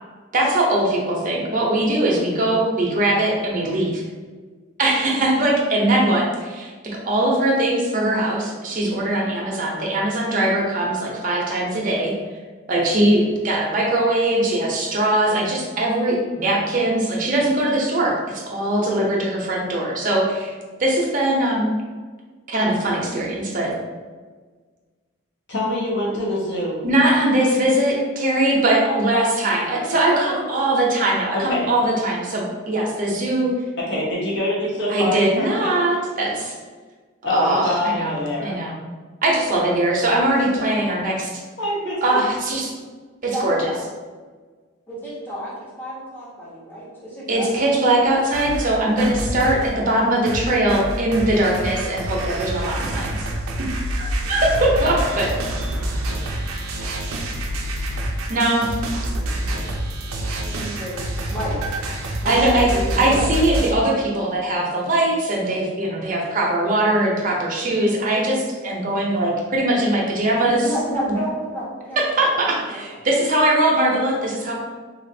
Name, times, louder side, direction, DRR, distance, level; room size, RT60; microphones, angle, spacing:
voice 1, 0.3-4.0 4.8-6.7 7.1-12.1 12.7-21.7 22.5-23.7 26.8-33.5 34.9-36.5 37.2-38.8 39.2-41.3 42.0-42.7 43.2-43.7 47.3-53.2 54.0-55.3 58.3-58.7 62.2-62.7 63.0-70.7 72.0-74.5, right 1 dB, 40° right, -2 dB, 0.6 m, -21 dB
voice 2, 25.5-26.8 28.8-29.0 31.3-31.7 33.8-35.8 37.2-38.6 40.5-41.0 41.6-42.2, left 1 dB, 55° left, -5 dB, 0.9 m, -25 dB
voice 3, 43.3-43.8 44.9-48.0 60.4-61.7 62.2-63.3 70.4-72.3 72.7-73.0 73.9-74.2, equal, 10° left, -8 dB, 0.8 m, -31 dB
sound 1, 48.1-49.7 50.3-63.7, right 1 dB, 80° right, 0.4 m, -27 dB
3.3 x 2.4 x 2.6 m, 1.4 s
head